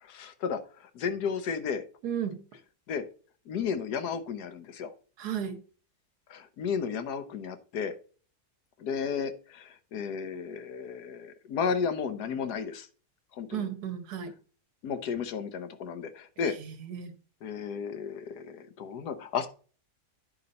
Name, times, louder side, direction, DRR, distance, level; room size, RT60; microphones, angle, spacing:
voice 1, 0.0-1.8 2.9-3.1 3.5-4.9 6.3-7.9 8.8-12.9 13.3-13.6 14.8-16.6 17.4-19.5, left 6 dB, 80° left, 10 dB, 1.4 m, -33 dB
voice 2, 2.0-2.4 5.2-5.6 13.5-14.3 16.6-17.1, right 8 dB, 80° right, 10 dB, 1.6 m, -34 dB
9.8 x 4.1 x 5.3 m, 0.39 s
omnidirectional pair, 1.7 m